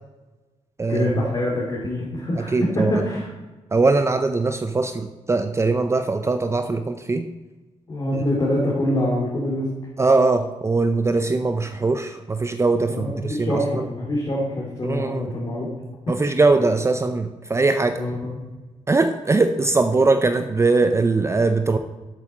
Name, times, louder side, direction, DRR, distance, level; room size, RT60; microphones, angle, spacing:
voice 1, 0.9-3.3 7.9-9.7 12.9-15.7 17.9-18.4, left 1 dB, 35° left, -5 dB, 3.0 m, -25 dB
voice 2, 2.4-2.9 3.7-7.3 8.1-8.2 10.0-13.8 14.8-15.3 16.1-18.0 18.9-21.8, right 3 dB, 25° right, 8 dB, 0.6 m, -21 dB
8.1 x 7.5 x 7.5 m, 1.2 s
cardioid pair, 120°, 12 cm